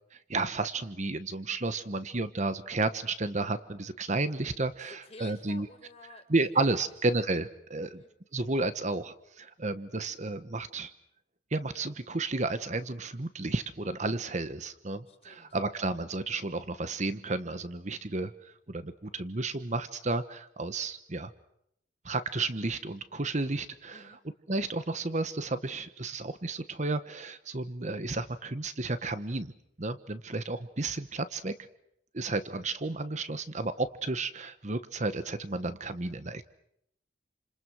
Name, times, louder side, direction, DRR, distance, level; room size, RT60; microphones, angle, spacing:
voice 1, 0.3-5.7 6.3-8.0 8.3-10.9 11.5-21.3 22.0-24.0 24.5-29.5 29.8-31.5 32.1-36.4, right 3 dB, 40° right, 11 dB, 1.1 m, -32 dB
voice 2, 4.8-7.2 7.9-8.1 15.1-15.6 23.9-24.2, left 3 dB, 35° left, 4 dB, 4.6 m, -52 dB
29.5 x 27.0 x 6.3 m, 0.75 s
head